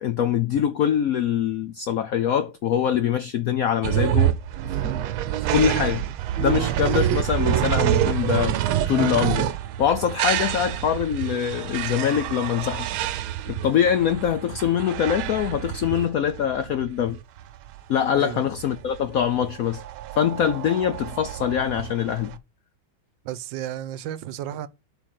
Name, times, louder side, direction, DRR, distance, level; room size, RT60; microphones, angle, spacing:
voice 1, 0.0-4.4 4.8-5.1 5.5-6.1 6.4-8.6 8.9-9.5 9.8-12.9 13.5-17.2 17.9-19.8 20.1-22.4, left 9 dB, 90° left, 0.7 m, -23 dB
sound 1, 3.8-22.4, right 12 dB, 90° right, 1.5 m, -27 dB
voice 2, 23.2-24.7, right 11 dB, 75° right, 1.3 m, -33 dB
7.9 x 4.0 x 5.9 m
omnidirectional pair, 2.2 m